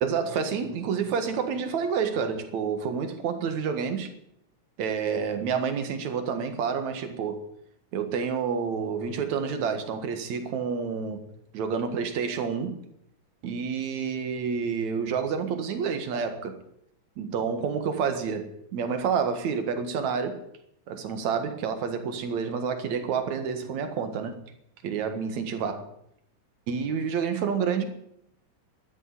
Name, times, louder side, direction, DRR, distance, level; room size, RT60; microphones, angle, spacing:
voice 1, 0.0-4.1 4.8-7.4 7.9-11.2 11.5-12.8 13.4-16.6 17.2-20.4 20.9-24.4 24.8-25.9 26.7-27.8, right 6 dB, 60° right, 2.8 m, -29 dB
12.5 x 10.0 x 9.7 m
omnidirectional pair, 3.8 m